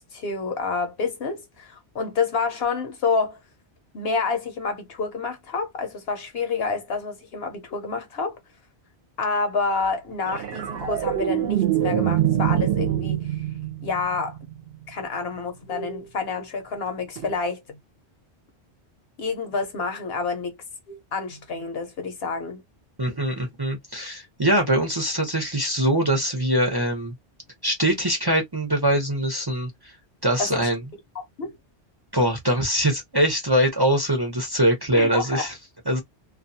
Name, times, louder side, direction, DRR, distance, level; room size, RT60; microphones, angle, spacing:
voice 1, 0.0-3.4 3.9-8.4 9.2-13.2 13.8-14.4 14.9-17.6 19.2-20.6 20.9-22.6 30.4-30.7 31.1-31.6 34.9-35.5, left 4 dB, 65° left, 1.0 m, -28 dB
sound 1, 10.3-14.8 17.2-17.3, right 12 dB, 65° right, 0.8 m, -25 dB
voice 2, 23.0-27.1 27.6-29.9 30.2-30.8 32.1-35.5 35.9-36.0, right 1 dB, 25° right, 0.7 m, -23 dB
2.4 x 2.2 x 2.6 m
omnidirectional pair, 1.1 m